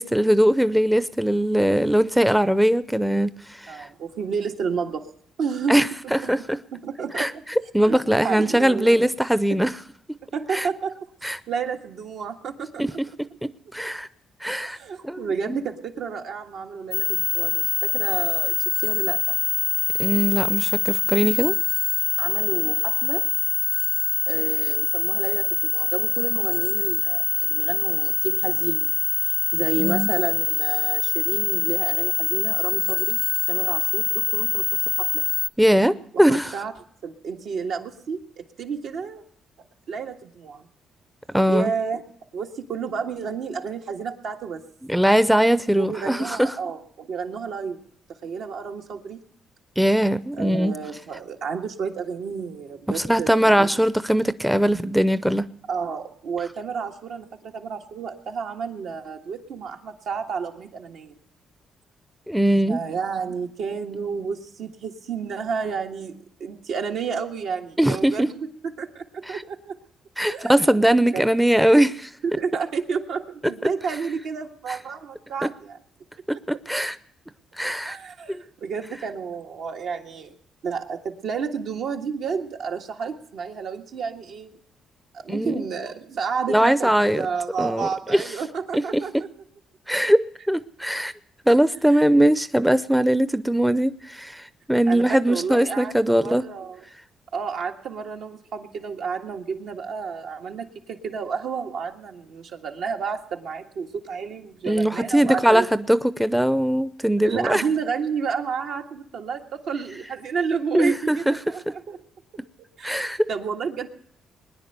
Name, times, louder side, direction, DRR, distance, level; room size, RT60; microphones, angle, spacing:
voice 1, 0.0-3.9 5.7-6.6 7.2-7.3 7.7-9.7 10.5-10.7 11.2-11.4 12.8-12.9 13.7-14.1 14.4-14.8 15.0-15.6 20.0-21.5 29.8-30.1 35.6-36.5 41.3-41.7 44.9-46.5 49.8-50.8 52.9-55.5 62.3-62.8 67.8-68.3 69.3-69.4 70.2-71.9 75.4-75.5 76.5-77.0 77.6-78.0 78.3-78.4 85.3-85.6 86.5-87.3 87.6-88.2 88.7-89.0 89.9-91.1 91.5-96.4 104.7-107.6 110.7-111.3 112.8-113.2, right 1 dB, ahead, 13 dB, 0.6 m, -20 dB
voice 2, 3.7-5.1 5.4-5.9 6.2-6.3 6.7-7.4 7.8-8.0 8.2-9.1 9.5-9.6 10.3-11.0 11.2-13.0 14.6-19.4 22.2-23.3 24.3-33.2 33.5-35.2 36.3-36.7 37.0-38.2 38.6-39.2 39.9-40.6 41.5-42.0 42.3-44.6 45.8-47.8 48.2-49.2 50.3-53.8 55.7-61.2 62.7-69.8 70.3-70.8 71.1-71.3 72.2-75.8 77.8-80.4 80.6-84.6 85.1-89.1 91.9-92.3 94.9-96.8 97.3-105.7 107.2-112.0 112.8-113.9, right 6 dB, 75° right, 2 dB, 1.7 m, -31 dB
sound 1, 16.9-35.5, left 6 dB, 50° left, 0.6 m, -24 dB
21.0 x 10.0 x 6.7 m, 0.66 s
cardioid pair, 90°, 0 cm